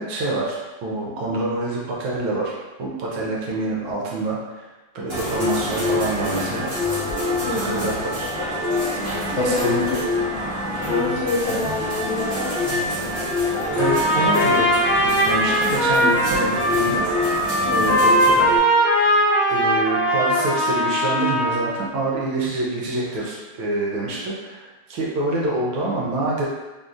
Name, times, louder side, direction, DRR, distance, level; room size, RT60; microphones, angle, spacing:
voice 1, 0.0-2.5 2.8-4.7 4.9-6.7 7.5-8.3 9.4-10.0 11.5-11.6 13.8-14.7 15.0-18.5 19.5-26.5, right 2 dB, 75° right, -4 dB, 1.4 m, -26 dB
sound 1, 5.1-18.6, left 2 dB, 40° right, 0.9 m, -25 dB
voice 2, 7.4-8.0 9.4-10.0 10.9-12.5 17.6-18.0, left 3 dB, 75° left, -4 dB, 1.4 m, -27 dB
Trumpet, 13.8-21.8, equal, 55° left, 1.3 m, -20 dB
3.5 x 2.6 x 2.4 m, 1.2 s
omnidirectional pair, 2.4 m